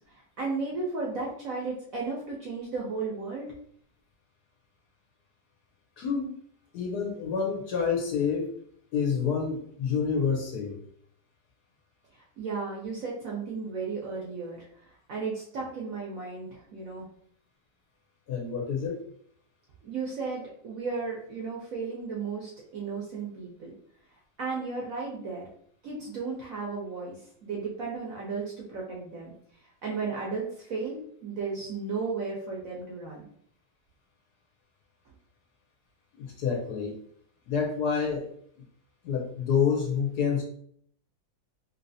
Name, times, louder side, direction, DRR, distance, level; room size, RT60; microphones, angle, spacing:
voice 1, 0.4-3.5 12.4-14.7 15.1-17.0 19.8-23.7 24.4-25.4 25.8-27.1 27.4-29.3 29.8-33.2, right 4 dB, 65° right, -3 dB, 0.9 m, -34 dB
voice 2, 6.0-6.3 6.7-8.5 8.9-10.8 18.3-19.0 36.2-37.0 37.5-38.3 39.0-40.4, left 6 dB, 70° left, 0 dB, 1.0 m, -28 dB
3.1 x 2.8 x 2.6 m, 0.63 s
omnidirectional pair, 2.0 m